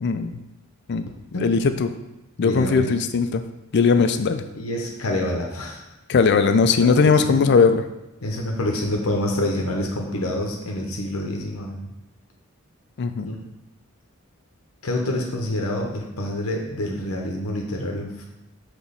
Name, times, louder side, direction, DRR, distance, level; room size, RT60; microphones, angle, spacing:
voice 1, 0.0-0.4 0.9-1.1 1.4-1.9 2.4-3.5 3.7-4.5 6.1-7.8 13.0-13.3, left 5 dB, 55° left, 9 dB, 0.4 m, -19 dB
voice 2, 2.4-2.9 4.5-5.8 6.7-7.5 8.2-11.9 13.2-13.4 14.8-18.3, left 1 dB, 75° left, 0 dB, 0.9 m, -27 dB
6.1 x 3.0 x 5.4 m, 0.94 s
head